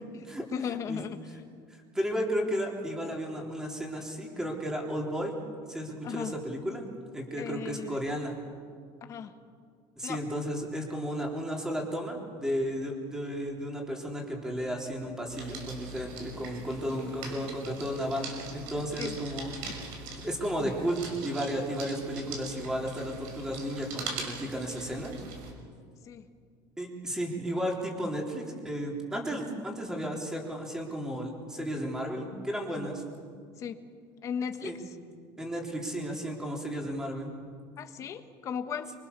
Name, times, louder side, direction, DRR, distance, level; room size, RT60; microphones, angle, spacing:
voice 1, 0.5-1.2 6.0-6.4 7.4-8.0 9.1-9.4 10.0-10.2 19.0-19.2 19.6-19.7 26.0-26.3 33.6-33.8 34.2-35.0 37.8-38.9, left 7 dB, 30° left, 7 dB, 1.5 m, -36 dB
voice 2, 1.9-5.3 5.7-6.8 7.1-8.4 10.0-19.5 20.1-25.1 26.8-33.0 34.6-34.8 35.4-37.3, equal, 5° right, 0 dB, 3.6 m, -33 dB
sound 1, 15.3-25.5, right 3 dB, 75° right, 6.3 m, -42 dB
29.5 x 24.0 x 6.9 m, 2.1 s
cardioid pair, 170°, 11 cm